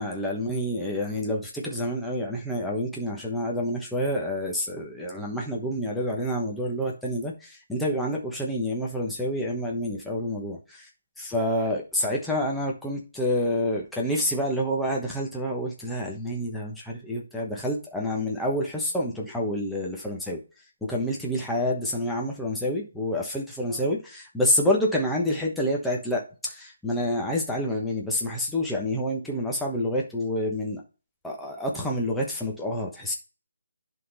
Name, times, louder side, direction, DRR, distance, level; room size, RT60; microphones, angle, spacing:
voice 1, 0.0-10.6 11.2-20.4 20.8-30.8 31.2-33.1, left 1 dB, ahead, -3 dB, 1.1 m, -28 dB
11.0 x 3.9 x 4.1 m, 0.34 s
hypercardioid pair, 175°, 0 cm